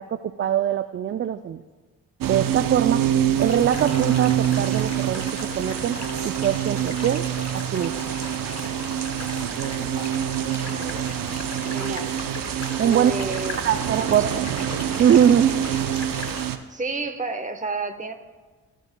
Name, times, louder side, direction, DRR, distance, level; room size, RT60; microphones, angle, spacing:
voice 1, 0.0-1.6 2.2-3.1 3.4-5.2 5.6-7.3 7.5-7.9 12.8-13.1 13.6-14.3 15.0-15.6, right 9 dB, 35° right, 11 dB, 0.4 m, -22 dB
sound 1, 2.2-16.6, right 11 dB, 70° right, 0.7 m, -26 dB
sound 2, 3.4-16.5, left 3 dB, 45° left, 1.3 m, -37 dB
voice 2, 10.6-11.1 11.7-12.1 12.8-13.6 14.0-14.3 16.7-18.1, right 3 dB, 20° right, 7 dB, 1.0 m, -30 dB
15.0 x 6.3 x 2.2 m, 1.3 s
supercardioid pair, 50°, 35 cm